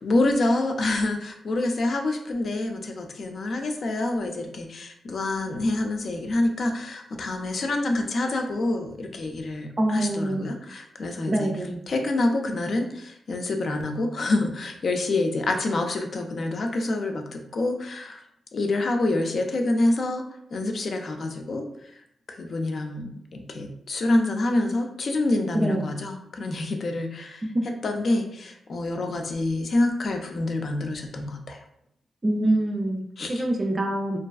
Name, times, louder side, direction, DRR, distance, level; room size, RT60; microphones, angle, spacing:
voice 1, 0.0-11.5 11.9-18.2 18.5-20.3 20.5-27.5 27.8-31.6 33.2-33.4, left 2 dB, 60° left, 4 dB, 0.4 m, -27 dB
voice 2, 9.8-10.5 11.3-11.8 25.5-25.9 27.5-27.6 32.2-33.0 33.3-34.2, right 1 dB, 35° right, 2 dB, 0.4 m, -24 dB
2.4 x 2.2 x 2.2 m, 0.74 s
cardioid pair, 65°, 0 cm